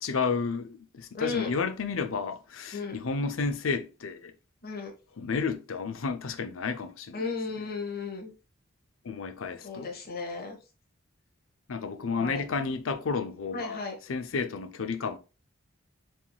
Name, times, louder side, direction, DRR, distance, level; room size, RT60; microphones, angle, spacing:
voice 1, 0.0-4.3 5.2-7.3 9.0-9.9 11.7-13.8 14.1-15.2, left 5 dB, 80° left, 0.6 m, -31 dB
voice 2, 1.1-1.5 2.7-3.0 4.6-4.9 7.1-8.3 9.6-10.6 12.2-12.4 13.5-14.0, left 4 dB, 50° left, 1.2 m, -34 dB
5.0 x 3.6 x 2.2 m
head